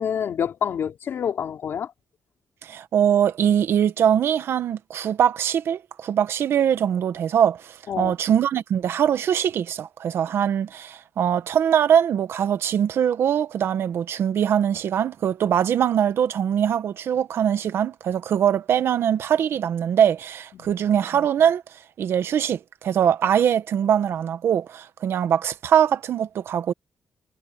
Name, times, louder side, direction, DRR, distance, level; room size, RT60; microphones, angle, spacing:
voice 1, 0.0-1.9 7.9-8.1 20.5-20.7, left 8 dB, 65° left, 3.7 m, -27 dB
voice 2, 2.6-21.6 22.0-26.7, right 9 dB, 70° right, 1.5 m, -22 dB
cardioid pair, 95°, 4 cm